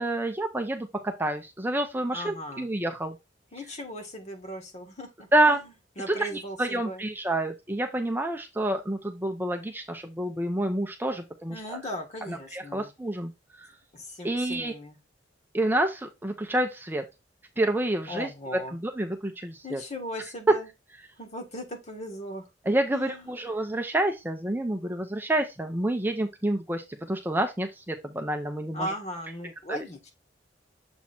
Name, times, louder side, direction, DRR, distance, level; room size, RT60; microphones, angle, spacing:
voice 1, 0.0-3.2 5.3-5.6 6.1-11.8 12.3-13.3 13.6-13.7 14.2-14.7 15.5-17.0 17.6-18.3 18.7-19.8 22.7-28.9 29.7-29.8, right 1 dB, 10° right, 0.6 m, -28 dB
voice 2, 2.1-2.7 3.5-5.7 6.0-7.0 11.5-12.9 13.9-15.0 18.1-18.8 19.6-20.7 21.2-22.5 22.9-23.3 28.7-30.1, left 1 dB, 40° left, 1.5 m, -38 dB
7.1 x 3.1 x 4.3 m
head